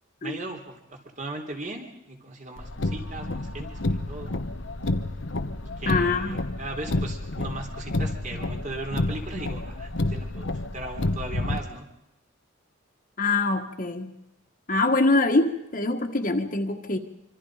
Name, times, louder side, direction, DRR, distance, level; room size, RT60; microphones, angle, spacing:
voice 1, 0.2-4.4 5.8-11.9, right 2 dB, 40° right, 3 dB, 3.8 m, -38 dB
Car, 2.6-11.6, left 2 dB, 75° left, 1.2 m, -30 dB
voice 2, 5.9-6.4 13.2-14.1 14.7-17.0, left 2 dB, 45° left, 4 dB, 1.8 m, -24 dB
26.0 x 25.5 x 5.1 m, 0.84 s
head